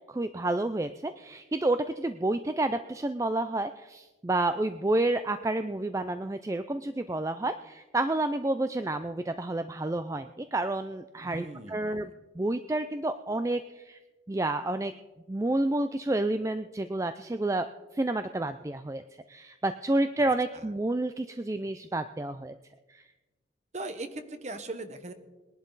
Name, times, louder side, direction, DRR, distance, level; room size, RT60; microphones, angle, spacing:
voice 1, 0.1-14.0 14.3-14.9 15.3-17.7 17.9-19.0 19.3-22.5 22.9-23.0, right 2 dB, 15° right, 10 dB, 0.3 m, -30 dB
voice 2, 11.2-12.1 20.5-20.6 23.7-25.1, right 2 dB, 35° right, 9 dB, 1.1 m, -39 dB
21.0 x 11.0 x 4.0 m, 1.2 s
head